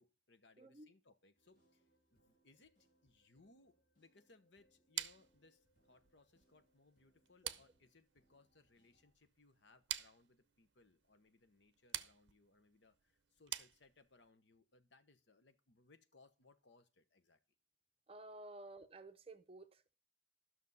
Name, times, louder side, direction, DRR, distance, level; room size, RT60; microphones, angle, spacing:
voice 1, 0.0-1.8 2.1-17.4 18.5-18.7, left 3 dB, 65° left, 1.0 m, -69 dB
voice 2, 0.6-0.9 18.1-19.9, right 2 dB, 30° right, 0.7 m, -54 dB
sound 1, 1.4-9.1, right 1 dB, 45° left, 3.5 m, -79 dB
sound 2, 5.0-14.3, right 13 dB, 70° right, 0.6 m, -49 dB
12.0 x 6.3 x 5.5 m
head